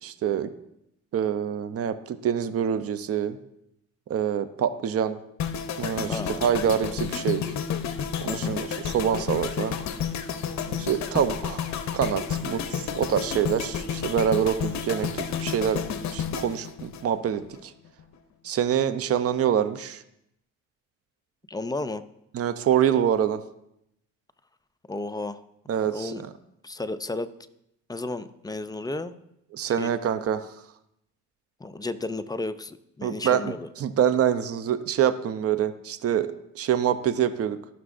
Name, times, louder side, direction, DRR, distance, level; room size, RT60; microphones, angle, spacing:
voice 1, 0.0-0.5 1.1-3.4 4.1-5.2 5.8-7.4 8.2-9.8 10.8-15.8 16.1-17.7 18.4-20.0 22.3-23.4 25.7-26.3 29.5-30.5 33.0-37.6, right 9 dB, 50° right, 11 dB, 0.6 m, -26 dB
sound 1, 5.4-17.6 17.8-18.1, left 7 dB, 65° left, 0.7 m, -31 dB
voice 2, 6.1-6.4 8.2-8.6 21.5-22.0 24.9-25.4 25.9-26.2 26.6-27.3 27.9-29.1 29.8-29.9 31.6-33.7, left 2 dB, 15° left, 11 dB, 0.4 m, -33 dB
15.0 x 6.0 x 2.5 m, 0.79 s
cardioid pair, 90°, 30 cm